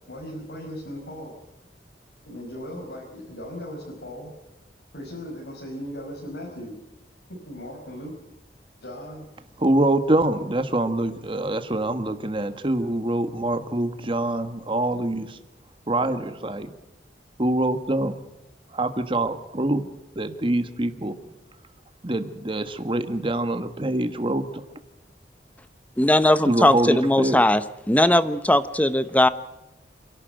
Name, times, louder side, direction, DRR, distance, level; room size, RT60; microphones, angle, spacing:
voice 1, 0.1-1.3 2.2-4.3 4.9-6.7 7.3-8.1 8.8-9.3, equal, 80° left, -2 dB, 5.2 m, -37 dB
voice 2, 9.6-15.4 15.9-16.7 17.4-18.2 18.7-19.8 20.1-21.2 22.0-24.6 26.4-27.4, right 1 dB, 30° right, 9 dB, 1.4 m, -25 dB
voice 3, 26.0-27.6 27.9-29.3, left 1 dB, 10° left, 14 dB, 0.8 m, -19 dB
28.0 x 11.5 x 9.1 m, 0.93 s
head